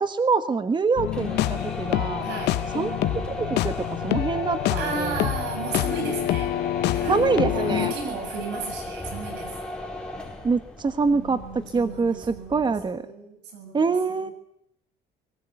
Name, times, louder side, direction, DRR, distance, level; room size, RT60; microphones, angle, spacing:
voice 1, 0.0-2.2 2.7-5.3 7.1-7.9 10.4-13.0 13.7-14.3, right 4 dB, 25° right, 10 dB, 1.4 m, -25 dB
sound 1, 1.0-7.9, left 16 dB, 80° left, 0.9 m, -28 dB
sound 2, 1.0-12.9, left 1 dB, 5° left, 5.1 m, -36 dB
voice 2, 2.2-2.6 4.7-6.5 6.9-9.6 11.1-14.3, right 5 dB, 90° right, 8 dB, 7.6 m, -35 dB
sound 3, 5.8-8.2 10.8-10.9, left 10 dB, 65° left, 1.2 m, -29 dB
24.0 x 20.0 x 9.2 m, 0.76 s
cardioid pair, 110°, 17 cm